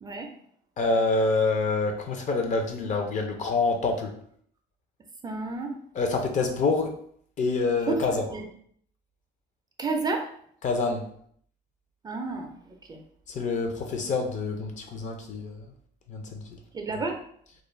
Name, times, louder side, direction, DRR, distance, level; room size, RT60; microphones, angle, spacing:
voice 1, 0.8-4.1 5.9-6.9 7.4-8.1 10.6-11.1 13.3-15.6 16.1-16.4, left 3 dB, 45° left, 4 dB, 0.5 m, -26 dB
voice 2, 5.2-5.8 7.9-8.5 9.8-10.3 12.0-13.0 16.7-17.2, right 3 dB, 25° right, 3 dB, 0.3 m, -31 dB
2.4 x 2.1 x 3.1 m, 0.64 s
cardioid pair, 110°, 17 cm